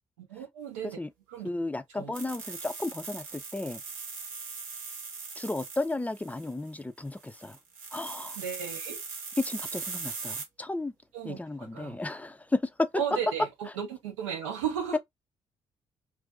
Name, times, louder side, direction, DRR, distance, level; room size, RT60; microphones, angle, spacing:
voice 1, 0.2-1.0 1.3-1.5 1.9-2.1 8.4-9.0 11.1-12.0 13.0-15.0, right 8 dB, 90° right, 0.7 m, -35 dB
voice 2, 1.4-3.8 5.4-7.6 7.9-8.4 9.4-10.9 11.2-12.9 14.9-15.0, left 2 dB, 10° left, 0.4 m, -33 dB
sound 1, 2.1-6.7 7.1-10.4, right 5 dB, 70° right, 1.0 m, -40 dB
2.5 x 2.3 x 2.2 m
hypercardioid pair, 45°, 15 cm